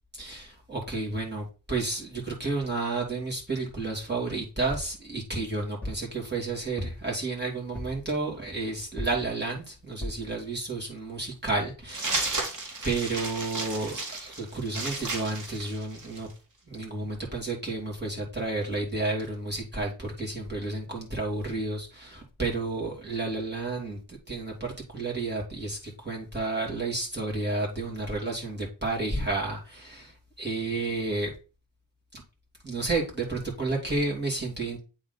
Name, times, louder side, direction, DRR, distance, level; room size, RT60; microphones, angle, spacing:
voice 1, 0.1-12.4 12.8-16.3 16.7-31.3 32.1-32.2 32.6-34.8, right 3 dB, 30° right, -2 dB, 2.6 m, -31 dB
sound 1, 4.7-5.0 5.8-6.1 6.8-7.2 7.8-8.1 9.0-9.3 10.0-10.3 10.9-11.0 11.2-11.3, left 1 dB, 5° left, 2.2 m, -36 dB
sound 2, 11.9-16.3, right 2 dB, 60° right, 1.8 m, -33 dB
8.8 x 3.7 x 4.0 m, 0.32 s
wide cardioid pair, 90°, 34 cm